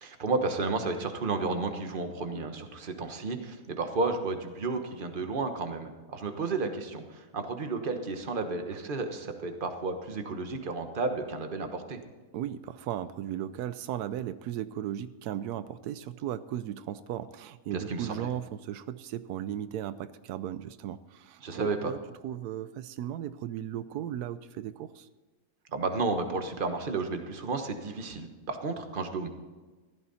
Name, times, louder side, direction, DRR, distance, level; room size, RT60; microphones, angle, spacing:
voice 1, 0.0-12.0 17.7-18.3 21.4-21.9 25.7-29.3, right 3 dB, 35° right, 6 dB, 1.3 m, -32 dB
voice 2, 12.3-25.1, right 11 dB, 90° right, 14 dB, 1.1 m, -36 dB
15.0 x 12.5 x 4.2 m, 1.3 s
omnidirectional pair, 1.6 m